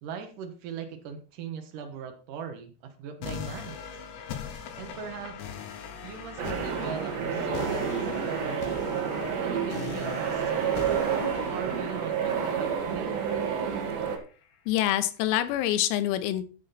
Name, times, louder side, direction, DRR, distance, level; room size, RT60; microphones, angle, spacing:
voice 1, 0.0-4.0 4.8-5.4 6.0-8.1 8.4-9.0 9.4-10.9 11.5-13.3, right 7 dB, 80° right, 5 dB, 1.8 m, -40 dB
sound 1, 3.2-14.2, left 7 dB, 70° left, 3.2 m, -41 dB
sound 2, 6.4-14.2, right 7 dB, 60° right, 3.8 m, -29 dB
voice 2, 14.7-16.4, left 12 dB, 85° left, 11 dB, 3.7 m, -26 dB
14.5 x 7.3 x 4.2 m, 0.37 s
omnidirectional pair, 5.9 m